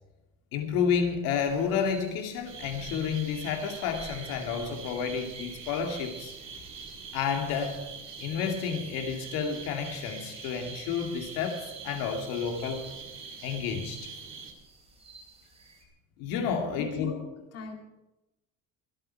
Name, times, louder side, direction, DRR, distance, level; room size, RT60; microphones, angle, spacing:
voice 1, 0.5-6.3 7.1-7.8 8.2-12.8 13.4-14.1 16.2-17.1, left 6 dB, 75° left, 2.5 m, -30 dB
sound 1, 1.4-15.9, right 3 dB, 15° right, 3.4 m, -51 dB
sound 2, 2.5-14.5, right 5 dB, 35° right, 2.1 m, -44 dB
voice 2, 16.8-17.2 17.5-17.8, left 5 dB, 45° left, 2.1 m, -38 dB
24.0 x 8.8 x 4.6 m
cardioid pair, 170°, 34 cm